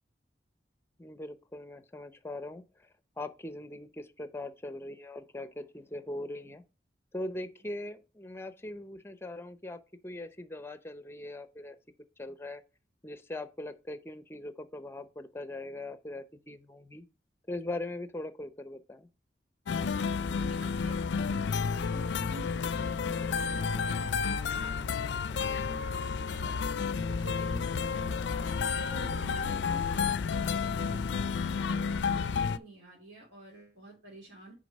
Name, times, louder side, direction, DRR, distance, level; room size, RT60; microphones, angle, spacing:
voice 1, 1.0-2.9 3.2-6.6 7.1-11.8 12.2-12.6 13.0-17.1 17.5-19.1, left 1 dB, 15° left, 0.6 m, -41 dB
sound 1, 19.7-32.6, left 5 dB, 70° left, 0.4 m, -31 dB
voice 2, 20.3-28.4 28.8-34.5, right 2 dB, 70° right, 2.9 m, -50 dB
6.3 x 4.1 x 5.2 m
head